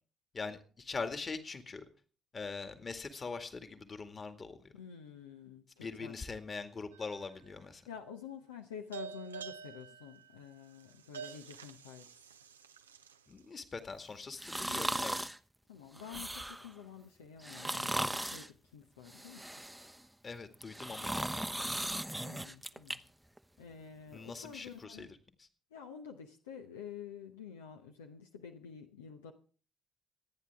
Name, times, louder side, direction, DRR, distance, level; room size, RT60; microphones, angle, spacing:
voice 1, 0.3-1.9 2.3-4.7 5.8-7.8 13.3-15.2 20.2-21.6 24.1-25.5, left 4 dB, 35° left, 8 dB, 2.0 m, -42 dB
voice 2, 4.7-6.1 7.9-12.1 14.7-15.0 15.7-19.5 22.2-23.0 23.6-25.1 25.7-29.3, left 7 dB, 80° left, 4 dB, 0.9 m, -49 dB
sound 1, 6.9-7.5 8.9-13.4, right 6 dB, 85° right, 0.6 m, -48 dB
sound 2, 14.4-15.4 16.0-16.7 17.4-18.5 19.1-20.0 20.5-23.0 23.4-23.5, right 1 dB, 5° right, 0.8 m, -37 dB
26.0 x 9.8 x 3.5 m, 0.41 s
figure-of-eight pair, 45°, 0 cm